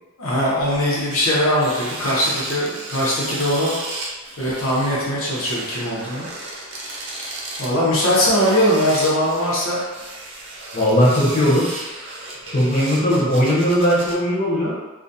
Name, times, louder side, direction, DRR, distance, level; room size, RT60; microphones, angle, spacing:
voice 1, 0.2-3.8 4.4-6.3 7.6-9.8, equal, 75° left, -7 dB, 0.7 m, -20 dB
sound 1, 0.7-0.8 1.1-14.1, right 2 dB, 60° right, 0.6 m, -34 dB
voice 2, 10.7-11.7 12.5-14.7, equal, 40° left, -6 dB, 0.7 m, -18 dB
2.3 x 2.2 x 2.6 m, 1.2 s
head